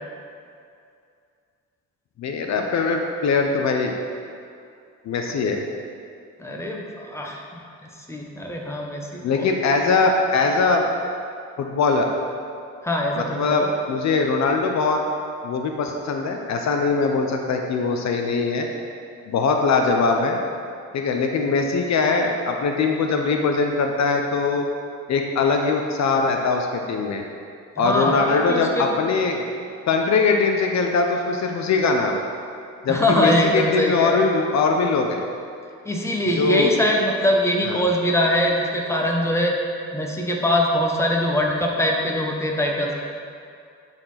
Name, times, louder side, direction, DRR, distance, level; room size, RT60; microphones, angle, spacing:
voice 1, 2.2-4.0 5.1-5.6 9.2-10.8 11.6-12.1 13.2-15.0 15.4-18.7 19.3-20.4 20.9-24.7 25.1-27.2 27.8-29.4 29.9-32.2 32.8-35.2 36.4-36.7 37.7-37.8, left 4 dB, 65° left, 3 dB, 0.9 m, -21 dB
voice 2, 6.4-7.6 8.0-9.5 12.8-13.7 27.8-28.9 32.9-34.2 35.8-39.6 39.9-42.9, left 1 dB, 10° left, -1 dB, 1.4 m, -23 dB
10.5 x 4.5 x 5.8 m, 2.4 s
cardioid pair, 90°, 30 cm